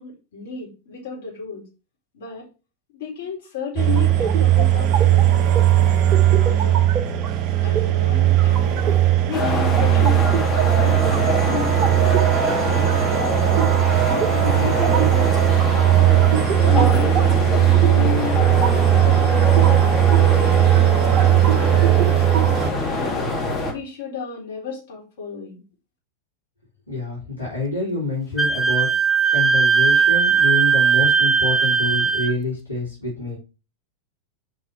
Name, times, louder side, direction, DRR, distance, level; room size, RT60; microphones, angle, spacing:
voice 1, 0.0-1.6 2.1-2.5 2.9-6.1 6.4-7.0 7.6-8.8 9.3-12.1 12.6-16.0 16.6-21.9 23.0-23.3 23.6-25.6, left 6 dB, 55° left, -3 dB, 4.0 m, -33 dB
sound 1, 3.8-22.7, right 12 dB, 35° right, 0.8 m, -17 dB
sound 2, 9.3-23.7, left 2 dB, 20° left, 2.4 m, -25 dB
voice 2, 26.9-28.9 29.3-33.4, left 3 dB, 85° left, -5 dB, 2.8 m, -27 dB
Wind instrument woodwind instrument, 28.4-32.3, right 6 dB, ahead, 0.7 m, -18 dB
5.3 x 5.0 x 5.5 m, 0.32 s
figure-of-eight pair, 90°, 0 cm